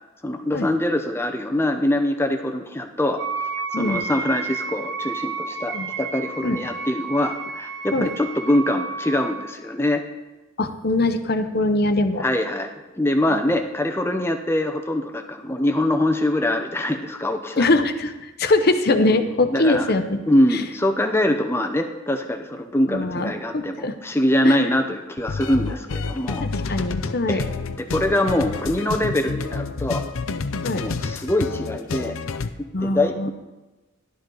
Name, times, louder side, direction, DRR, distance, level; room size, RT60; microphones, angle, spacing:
voice 1, 0.2-3.2 3.7-10.0 12.2-12.7 12.9-17.7 19.1-19.3 19.5-19.9 20.3-26.4 27.3-27.5 27.8-30.1 30.8-32.1 32.6-33.3, left 1 dB, 10° left, 5 dB, 0.7 m, -23 dB
Wind instrument woodwind instrument, 3.2-9.5, right 5 dB, 55° right, 1.1 m, -31 dB
voice 2, 10.6-12.2 17.6-20.2 20.5-20.6 22.9-24.0 24.4-24.6 26.4-27.4 30.6-30.8 32.7-33.3, left 2 dB, 45° left, 8 dB, 0.8 m, -22 dB
sound 1, 25.2-32.5, left 4 dB, 75° left, 0.6 m, -29 dB
13.5 x 11.5 x 3.9 m, 1.1 s
head